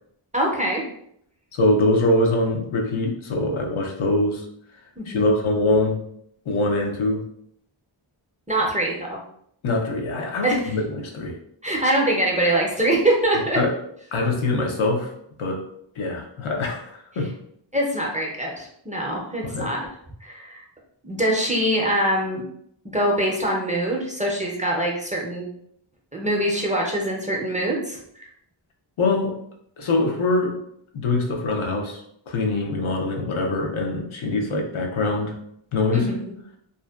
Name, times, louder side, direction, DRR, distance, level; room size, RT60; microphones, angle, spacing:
voice 1, 0.3-0.8 5.0-5.4 8.5-9.2 10.4-10.6 11.6-13.6 17.7-19.8 20.2-20.6 21.0-22.4 22.9-25.5 26.1-28.2 35.9-36.3, right 1 dB, 15° right, -3 dB, 0.4 m, -23 dB
voice 2, 1.5-4.5 5.1-6.0 6.5-7.2 9.6-11.4 13.5-13.7 14.1-15.1 15.4-15.6 16.0-17.3 19.4-19.7 29.0-29.4 29.8-30.6 30.9-35.4 35.7-36.1, left 2 dB, 75° left, 2 dB, 0.6 m, -23 dB
2.6 x 2.1 x 2.2 m, 0.70 s
wide cardioid pair, 70°, 49 cm